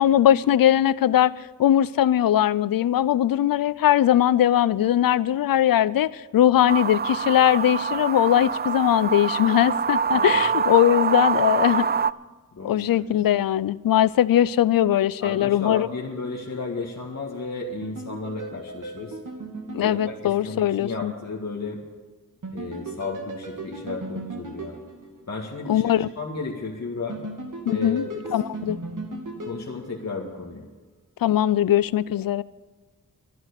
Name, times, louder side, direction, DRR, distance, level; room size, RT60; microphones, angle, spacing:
voice 1, 0.0-1.3 1.6-11.9 12.6-15.9 19.7-21.1 25.7-26.1 27.7-28.8 31.2-32.4, left 11 dB, 85° left, 19 dB, 0.5 m, -20 dB
sound 1, 6.7-12.1, right 6 dB, 30° right, 0.4 m, -25 dB
voice 2, 10.1-10.4 12.5-13.1 15.2-19.2 19.8-21.8 22.5-24.8 25.3-27.2 27.7-28.3 29.4-30.6, left 3 dB, 50° left, -2 dB, 2.0 m, -33 dB
sound 2, 17.8-20.9 22.4-25.6 27.1-30.5, right 2 dB, 65° right, 2.5 m, -37 dB
12.0 x 11.0 x 8.2 m, 1.4 s
cardioid pair, 55°, 34 cm